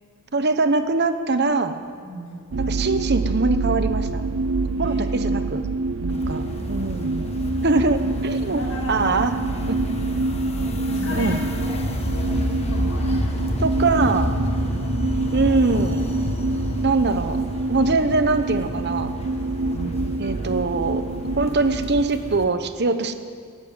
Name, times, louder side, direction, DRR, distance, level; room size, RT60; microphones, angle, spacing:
voice 1, 0.3-1.8 2.6-4.2 4.8-5.6 6.0-7.3 7.6-8.6 8.9-9.4 9.7-9.8 10.2-10.3 11.2-11.4 13.6-14.4 15.3-16.1 16.8-17.4 17.7-19.1 20.2-23.1, right 3 dB, 50° right, 9 dB, 1.0 m, -23 dB
voice 2, 2.0-2.5 4.7-5.3 7.7-7.9 8.5-9.5 10.2-13.6 19.7-20.1, equal, 85° left, -2 dB, 5.6 m, -37 dB
sound 1, 2.5-22.0, right 3 dB, 65° right, 0.5 m, -26 dB
sound 2, 6.1-22.4, left 1 dB, 30° left, 1.4 m, -29 dB
14.0 x 11.5 x 9.1 m, 2.2 s
head